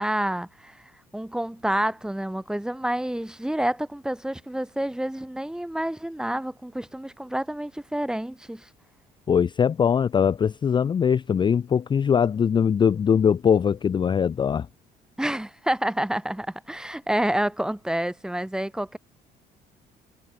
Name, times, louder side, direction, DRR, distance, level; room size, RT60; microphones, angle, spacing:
voice 1, 0.0-8.7 15.2-19.0, right 1 dB, 5° right, 0.9 m, -28 dB
voice 2, 9.3-14.7, left 7 dB, 25° left, 0.4 m, -21 dB
cardioid pair, 110°, 17 cm